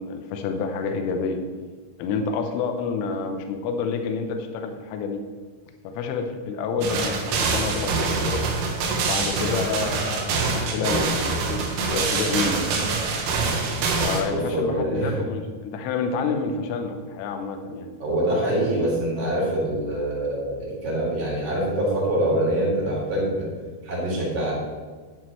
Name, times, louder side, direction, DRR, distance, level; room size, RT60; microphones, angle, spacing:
voice 1, 0.0-1.4 2.0-5.2 5.9-8.4 9.0-12.8 14.0-17.9, left 5 dB, 85° left, 5 dB, 3.5 m, -28 dB
sound 1, 6.8-14.2, right 4 dB, 80° right, 3.8 m, -25 dB
voice 2, 14.3-15.2 18.0-23.5 23.8-24.6, right 1 dB, 30° right, -6 dB, 4.3 m, -25 dB
13.5 x 9.6 x 3.1 m, 1.4 s
omnidirectional pair, 5.7 m